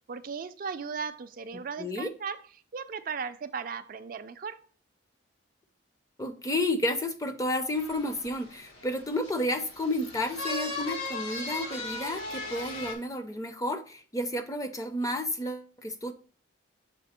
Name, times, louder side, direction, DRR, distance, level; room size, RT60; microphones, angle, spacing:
voice 1, 0.1-2.4 2.7-4.6, right 5 dB, 45° right, 9 dB, 0.3 m, -36 dB
voice 2, 1.8-2.1 6.2-16.1, left 1 dB, 15° left, 8 dB, 0.5 m, -31 dB
sound 1, 7.7-12.9, left 2 dB, 90° left, 1.6 m, -38 dB
6.8 x 3.6 x 4.2 m, 0.43 s
head